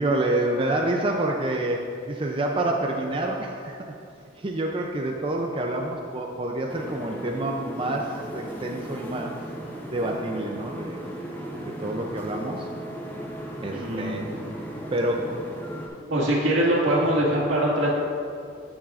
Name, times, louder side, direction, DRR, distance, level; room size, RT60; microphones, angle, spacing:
voice 1, 0.0-3.9 4.4-9.3 9.9-11.0 11.6-12.7 13.6-14.2 14.9-15.3, right 1 dB, 25° right, 1 dB, 0.4 m, -28 dB
sound 1, 6.7-15.9, equal, 10° left, 0.8 m, -37 dB
voice 2, 13.7-14.2 16.1-17.9, right 1 dB, 90° right, -5 dB, 2.0 m, -23 dB
10.5 x 7.2 x 2.5 m, 2.4 s
head